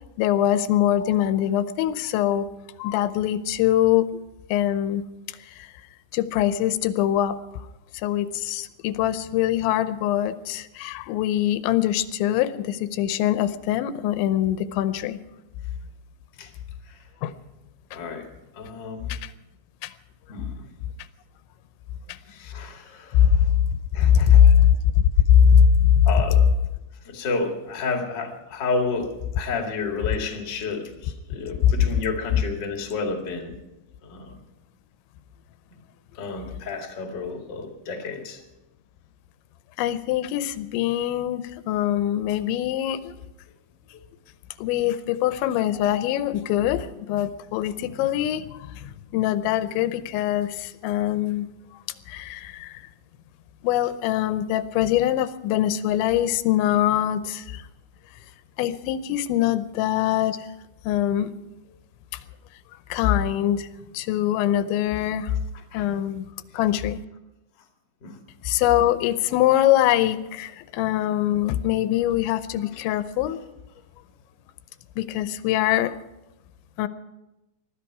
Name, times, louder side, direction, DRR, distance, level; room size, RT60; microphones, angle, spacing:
voice 1, 0.2-2.5 2.8-4.1 4.5-5.0 5.6-5.7 6.1-7.4 8.0-15.2 17.2-17.3 19.1-19.3 19.8-19.9 22.1-22.2 23.1-23.4 24.0-26.1 31.6-31.7 39.8-43.2 44.6-51.5 52.1-52.8 53.6-57.6 58.6-60.5 60.8-61.3 62.9-63.7 63.9-65.4 65.7-66.3 66.5-67.0 68.4-73.4 75.0-76.0 76.8-76.9, left 10 dB, 90° left, 13 dB, 3.1 m, -22 dB
voice 2, 17.9-18.3 18.5-19.1 20.3-20.6 22.3-23.5 23.9-24.7 26.0-26.4 27.0-33.5 34.0-34.4 36.2-38.4 41.7-41.8 65.7-65.8 68.0-68.2, left 4 dB, 35° left, 2 dB, 1.9 m, -31 dB
21.0 x 13.5 x 4.8 m, 0.97 s
omnidirectional pair, 5.1 m